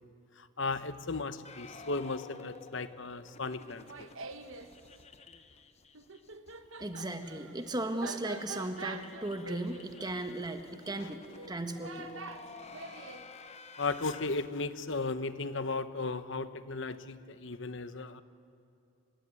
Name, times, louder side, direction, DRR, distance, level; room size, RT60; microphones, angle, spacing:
voice 1, 0.4-4.1 13.8-18.2, left 3 dB, 60° left, 12 dB, 1.0 m, -36 dB
sound 1, 1.5-6.6 6.8-6.9 7.2-7.3 7.6-14.3, left 4 dB, 30° left, 1.1 m, -52 dB
Laughter, 3.7-4.7 5.9-13.3, right 4 dB, 70° right, 1.3 m, -46 dB
voice 2, 6.8-12.1, right 1 dB, 20° right, 6 dB, 1.4 m, -36 dB
29.0 x 16.0 x 9.6 m, 2.6 s
head